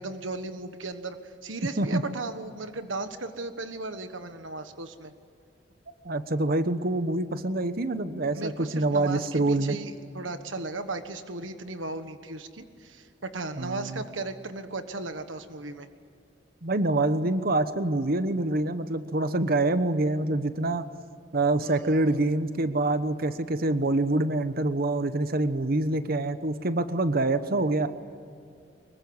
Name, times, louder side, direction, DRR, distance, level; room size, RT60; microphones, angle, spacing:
voice 1, 0.0-5.1 8.3-15.9 21.6-22.2, right 3 dB, 85° right, 8 dB, 1.4 m, -36 dB
voice 2, 6.0-9.8 13.6-14.0 16.6-20.9 21.3-27.9, right 2 dB, 50° right, 11 dB, 1.1 m, -26 dB
24.5 x 22.5 x 9.6 m, 2.4 s
head